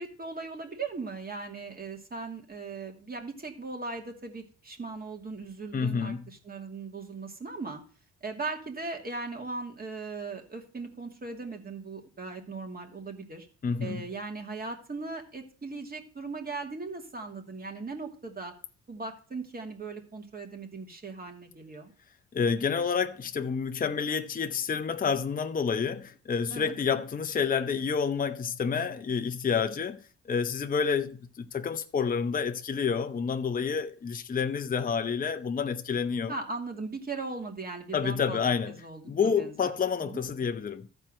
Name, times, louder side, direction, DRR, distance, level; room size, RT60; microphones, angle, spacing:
voice 1, 0.0-7.8 8.2-13.5 13.8-18.5 18.9-21.9 26.5-26.7 36.3-38.4 38.8-39.7 40.0-40.2, right 3 dB, 30° right, 2.6 m, -38 dB
voice 2, 5.7-6.3 13.6-14.1 22.3-36.3 37.9-38.8 39.1-40.9, left 6 dB, 30° left, 0.8 m, -29 dB
13.5 x 4.5 x 7.7 m
cardioid pair, 90°, 30 cm